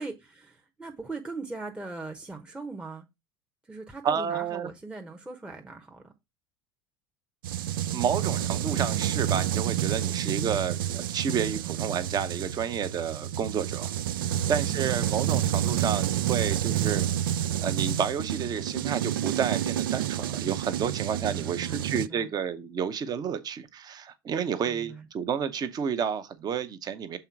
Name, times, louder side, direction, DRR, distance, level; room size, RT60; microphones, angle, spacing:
voice 1, 0.0-3.0 3.6-6.1 21.2-22.3 24.7-25.1, right 3 dB, 10° right, 0.9 m, -40 dB
voice 2, 4.0-4.7 7.9-13.9 14.5-17.1 17.6-27.2, right 7 dB, 35° right, 0.9 m, -30 dB
sound 1, 7.4-22.1, right 11 dB, 65° right, 0.4 m, -29 dB
6.9 x 3.8 x 4.6 m
figure-of-eight pair, 70°, 12 cm